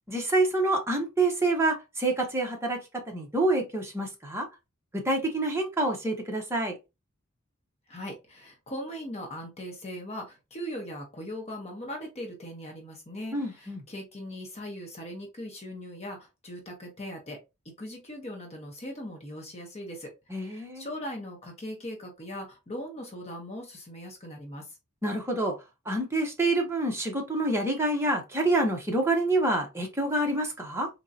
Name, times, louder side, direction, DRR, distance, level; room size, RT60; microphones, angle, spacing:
voice 1, 0.1-2.8 3.1-4.5 4.9-6.7 13.3-13.8 20.3-20.9 25.0-25.5 25.9-30.9, right 2 dB, 15° right, 0.9 m, -27 dB
voice 2, 7.9-17.4 17.6-20.1 20.3-24.7, equal, 30° left, 1.0 m, -39 dB
3.7 x 2.9 x 2.7 m
head